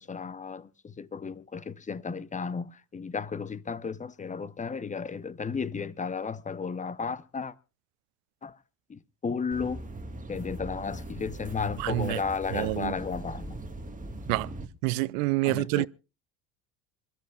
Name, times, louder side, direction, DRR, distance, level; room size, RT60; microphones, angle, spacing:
voice 1, 0.0-7.5 8.4-8.6 8.9-9.8 10.3-13.6 15.4-15.9, left 5 dB, 15° left, 0.8 m, -34 dB
sound 1, 9.5-14.7, right 1 dB, 15° right, 1.6 m, -40 dB
voice 2, 11.8-12.2 12.5-12.9 14.3-14.5 14.8-15.9, right 22 dB, 55° right, 0.7 m, -27 dB
27.0 x 13.5 x 2.4 m
figure-of-eight pair, 65°, 49 cm